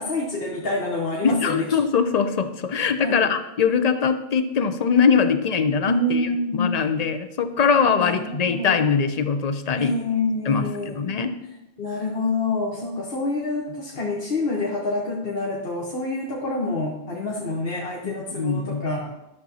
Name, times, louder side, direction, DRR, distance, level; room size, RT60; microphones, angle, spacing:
voice 1, 0.0-1.6 3.0-3.3 5.9-6.7 8.0-8.8 9.8-11.0 11.8-19.1, left 2 dB, 65° left, -3 dB, 1.3 m, -27 dB
voice 2, 1.2-10.0 10.4-11.3 18.0-18.9, left 6 dB, 45° left, 8 dB, 0.6 m, -22 dB
12.0 x 6.8 x 2.8 m, 0.92 s
omnidirectional pair, 1.1 m